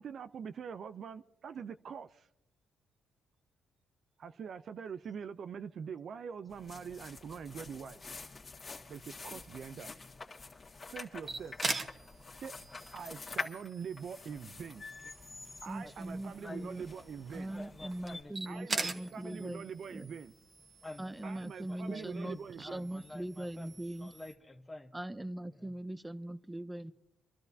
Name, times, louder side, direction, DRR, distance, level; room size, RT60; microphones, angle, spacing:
voice 1, 0.0-2.3 4.2-8.0 8.9-9.9 10.9-11.6 12.4-12.5 12.9-14.8 15.6-17.5 18.5-20.3 21.2-22.8, right 7 dB, 55° right, 0.5 m, -44 dB
sound 1, 6.5-18.2, left 4 dB, 35° left, 1.8 m, -47 dB
sound 2, 11.2-24.3, right 3 dB, 35° right, 1.3 m, -44 dB
voice 2, 15.0-16.8 17.5-19.5 20.8-24.9 25.5-25.7, left 2 dB, 15° left, 0.9 m, -51 dB
voice 3, 15.7-16.8 17.3-20.1 21.0-24.1 24.9-26.9, right 1 dB, 10° right, 0.6 m, -41 dB
27.5 x 12.5 x 2.7 m
cardioid pair, 90°, 0 cm